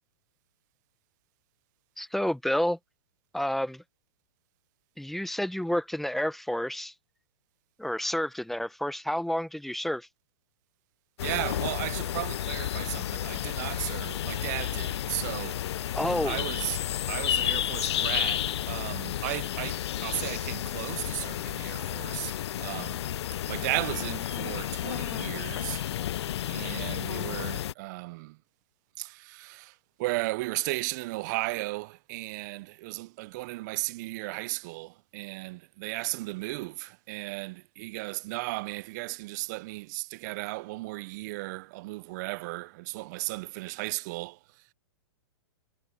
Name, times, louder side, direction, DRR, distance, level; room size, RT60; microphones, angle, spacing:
voice 1, 2.0-2.8 3.3-3.8 5.0-6.9 7.8-10.1 16.0-16.4, equal, ahead, 0.6 m, -29 dB
sound 1, 11.2-27.7, left 12 dB, 75° left, 0.4 m, -32 dB
voice 2, 11.2-15.6 16.2-16.8 17.1-23.0 23.5-25.8 26.5-28.4 29.0-29.7 30.0-44.4, right 22 dB, 40° right, 0.4 m, -35 dB
hypercardioid pair, 135°, 14 cm